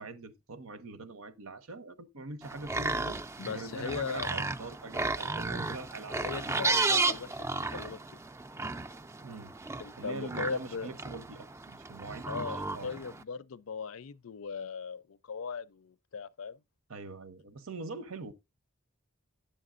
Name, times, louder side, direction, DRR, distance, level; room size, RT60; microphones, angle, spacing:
voice 1, 0.0-3.2 3.5-6.2 9.2-9.5 10.0-12.9 16.9-18.3, right 3 dB, 90° right, 0.8 m, -43 dB
sound 1, 2.4-13.2, right 3 dB, 15° right, 0.3 m, -34 dB
voice 2, 3.4-4.3 6.1-7.5 7.7-8.0 9.8-10.9 12.3-16.6, left 5 dB, 80° left, 0.5 m, -38 dB
10.0 x 7.6 x 2.5 m
head